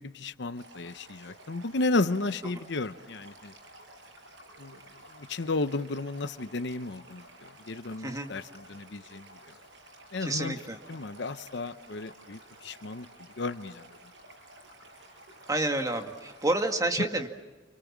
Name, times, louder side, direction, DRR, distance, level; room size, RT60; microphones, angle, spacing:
voice 1, 0.0-3.5 4.6-4.8 5.1-9.4 10.1-10.6 10.9-13.1 13.4-13.9, left 2 dB, 65° left, 12 dB, 0.8 m, -33 dB
Stream, 0.5-16.8, right 1 dB, 90° right, 7.6 m, -52 dB
voice 2, 8.0-8.3 10.2-10.8 15.5-17.3, right 2 dB, 20° right, 4 dB, 1.9 m, -29 dB
30.0 x 26.0 x 7.4 m, 1.2 s
head